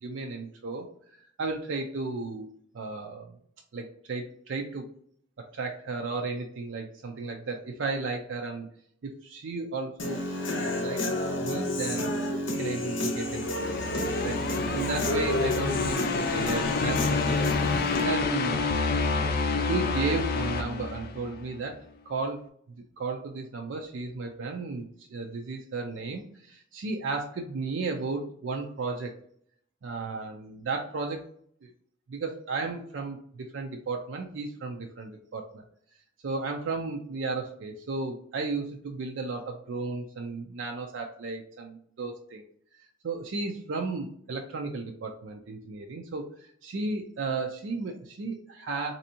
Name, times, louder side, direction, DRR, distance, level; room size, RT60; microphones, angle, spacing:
voice 1, 0.0-0.9 1.4-2.5 2.7-3.4 3.7-4.9 5.4-8.7 9.0-10.2 10.6-11.1 11.4-12.1 12.6-13.8 14.2-17.5 18.0-18.7 19.7-21.8 22.1-22.4 23.0-29.2 29.8-31.3 31.6-31.7 32.1-35.6 36.2-42.4 43.0-48.9, right 3 dB, 75° right, 2 dB, 0.4 m, -34 dB
Human voice / Guitar, 10.0-18.0, left 1 dB, 75° left, 0.8 m, -31 dB
sound 1, 13.2-21.5, left 4 dB, 50° left, 0.4 m, -28 dB
3.4 x 2.7 x 2.7 m, 0.63 s
head